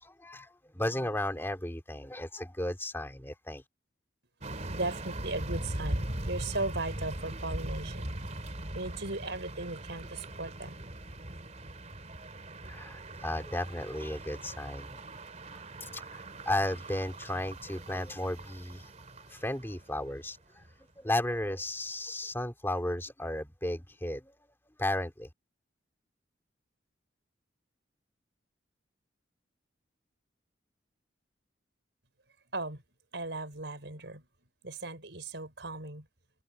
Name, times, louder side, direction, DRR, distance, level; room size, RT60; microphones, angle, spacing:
voice 1, 0.0-3.6 12.7-15.1 15.5-18.9 19.3-20.4 21.0-24.5 24.8-25.3, left 1 dB, 10° left, 2.9 m, -34 dB
sound 1, 4.4-20.3 20.6-20.7, right 1 dB, 40° right, 3.0 m, -40 dB
voice 2, 4.7-8.2 8.7-10.7 32.5-32.8 33.1-34.3 34.6-36.1, right 2 dB, 65° right, 6.3 m, -37 dB
head